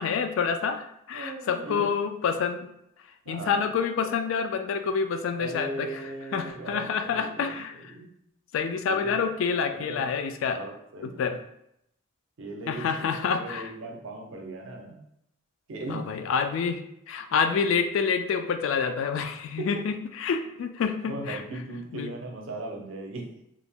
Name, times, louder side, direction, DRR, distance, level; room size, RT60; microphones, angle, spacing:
voice 1, 0.0-2.7 3.3-5.9 6.3-7.9 8.5-10.6 11.2-11.4 12.7-13.7 15.9-16.8 17.1-21.4 21.9-22.1, left 6 dB, 75° left, 8 dB, 0.3 m, -27 dB
voice 2, 1.1-1.9 3.3-3.7 5.4-8.1 8.9-9.2 9.7-10.0 10.5-11.2 12.4-15.0 15.7-16.2 19.6-19.9 21.0-23.4, right 2 dB, 75° right, 2 dB, 0.5 m, -38 dB
2.4 x 2.0 x 3.4 m, 0.78 s
head